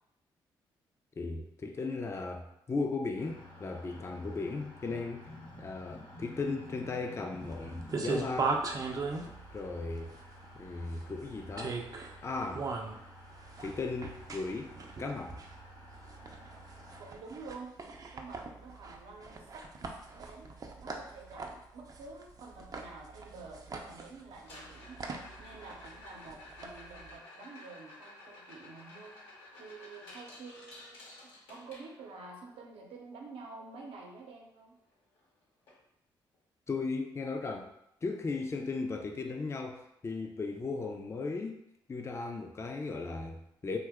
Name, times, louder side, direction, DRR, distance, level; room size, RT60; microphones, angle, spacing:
voice 1, 1.2-5.3 5.6-8.6 9.2-10.1 10.6-11.8 12.2-12.7 13.6-14.7 15.0-15.4 36.7-37.7 38.0-41.6 41.9-43.8, left 3 dB, 30° left, 4 dB, 0.4 m, -36 dB
sound 1, 3.2-17.1, left 1 dB, 65° left, 0.9 m, -52 dB
sound 2, 7.4-27.1, right 4 dB, 40° right, 0.4 m, -40 dB
voice 2, 17.0-17.7 18.1-19.7 20.1-20.5 20.8-29.2 29.6-31.1 31.5-34.8, right 3 dB, 75° right, 0 dB, 0.6 m, -49 dB
sound 3, 24.3-32.3 34.6-34.7 34.9-35.2 35.7-35.8 36.3-36.4 38.3-38.4, left 2 dB, 90° left, 0.8 m, -52 dB
2.8 x 2.2 x 3.4 m, 0.80 s
supercardioid pair, 55°, 10 cm